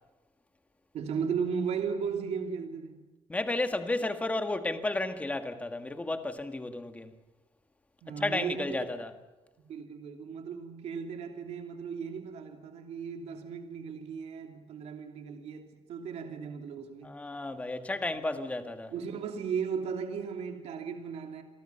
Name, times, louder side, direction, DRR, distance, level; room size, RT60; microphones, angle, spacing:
voice 1, 0.9-3.0 8.0-8.8 9.6-17.2 18.9-21.4, right 6 dB, 75° right, 2.9 m, -36 dB
voice 2, 3.3-7.1 8.2-9.1 17.0-18.9, left 2 dB, 15° left, 1.7 m, -32 dB
29.5 x 23.5 x 5.8 m
cardioid pair, 165°, 11 cm